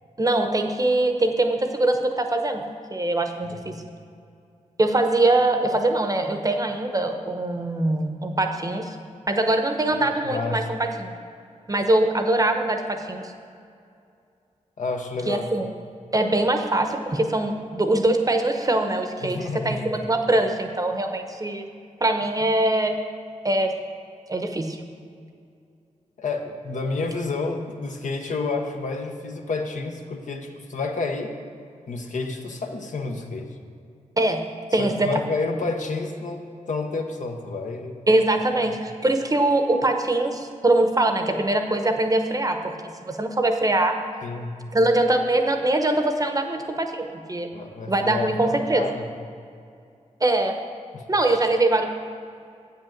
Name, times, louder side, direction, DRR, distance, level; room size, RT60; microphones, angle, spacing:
voice 1, 0.2-2.6 2.9-3.8 4.8-9.0 9.3-11.1 11.7-13.3 15.3-15.7 16.1-19.4 19.6-21.6 22.0-23.0 23.4-23.7 24.3-24.8 34.2-34.4 34.7-35.1 38.1-42.8 43.0-43.9 44.7-47.5 47.9-48.8 50.2-50.6 51.1-51.8, right 2 dB, 25° right, 5 dB, 0.8 m, -22 dB
voice 2, 10.2-10.6 14.8-15.4 19.2-19.9 26.2-31.3 31.9-33.5 34.8-38.0 38.5-38.6 44.2-44.5 47.5-49.1 50.9-51.0, left 3 dB, 70° left, 3 dB, 0.9 m, -30 dB
7.6 x 5.7 x 7.2 m, 2.4 s
cardioid pair, 70°, 13 cm